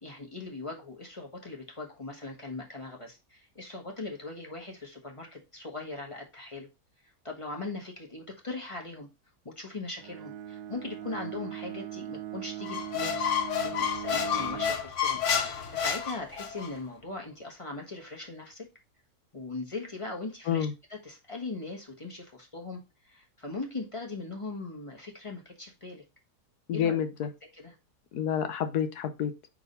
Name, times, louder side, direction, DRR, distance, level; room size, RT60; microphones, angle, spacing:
voice 1, 0.0-6.7 7.2-9.1 9.4-13.2 13.6-18.7 19.3-20.7 21.0-22.8 23.0-26.0 26.7-27.0 27.6-27.7, left 3 dB, 20° left, 1 dB, 1.3 m, -40 dB
Bowed string instrument, 10.0-14.9, right 11 dB, 90° right, 1.3 m, -40 dB
Squeak, 12.6-16.7, left 7 dB, 55° left, 1.1 m, -30 dB
voice 2, 26.7-27.3 28.1-29.3, left 8 dB, 85° left, 9 dB, 1.4 m, -28 dB
4.9 x 3.8 x 5.3 m, 0.26 s
omnidirectional pair, 1.7 m